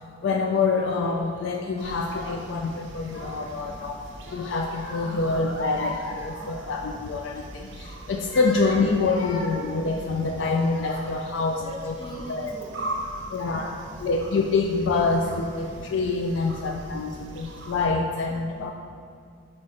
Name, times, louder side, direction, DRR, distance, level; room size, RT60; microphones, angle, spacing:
voice 1, 0.2-4.0 4.3-11.9 12.3-12.6 13.3-13.7 14.0-18.7, left 3 dB, 70° left, 3 dB, 0.3 m, -26 dB
Child speech kid speaking / Crying sobbing, 0.7-1.3 1.9-2.6 2.9-3.7 4.2-7.0 7.4-7.6 8.1-11.3 11.9-12.3 13.0-13.1 13.4-14.1, left 2 dB, 85° left, 0.8 m, -39 dB
sound 1, 1.8-17.9, right 1 dB, 75° right, 0.6 m, -41 dB
voice 2, 2.3-4.5 4.9-5.7 6.4-6.7 8.0-8.1 11.6-12.8 13.2-13.9 15.0-15.4 16.8-17.6 18.3-18.7, equal, 30° left, -2 dB, 0.9 m, -45 dB
4.9 x 4.2 x 4.8 m, 2.3 s
head